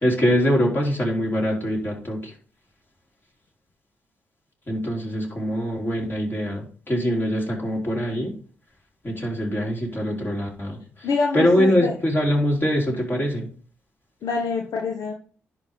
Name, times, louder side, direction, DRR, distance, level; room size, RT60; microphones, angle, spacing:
voice 1, 0.0-2.3 4.7-8.3 9.0-10.8 11.3-13.5, equal, 35° left, -2 dB, 4.3 m, -23 dB
voice 2, 11.0-11.9 14.2-15.1, left 4 dB, 65° left, 2 dB, 1.1 m, -25 dB
10.5 x 4.1 x 5.2 m, 0.42 s
hypercardioid pair, 40°, 6 cm